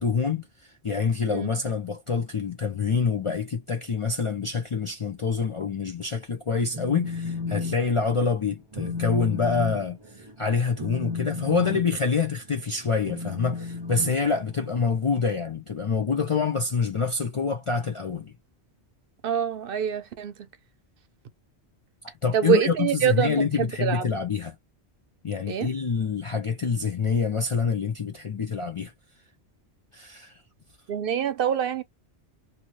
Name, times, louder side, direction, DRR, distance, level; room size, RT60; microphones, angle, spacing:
voice 1, 0.0-18.3 22.0-24.5 25.2-28.9 29.9-30.3, left 5 dB, 45° left, 0.4 m, -26 dB
Telephone, 6.7-7.8 8.1-8.4 8.7-14.8, left 4 dB, 30° right, 0.5 m, -33 dB
voice 2, 19.2-20.3 22.3-24.0 25.5-25.7 30.9-31.8, right 8 dB, 60° right, 0.7 m, -25 dB
2.8 x 2.6 x 2.9 m
omnidirectional pair, 1.1 m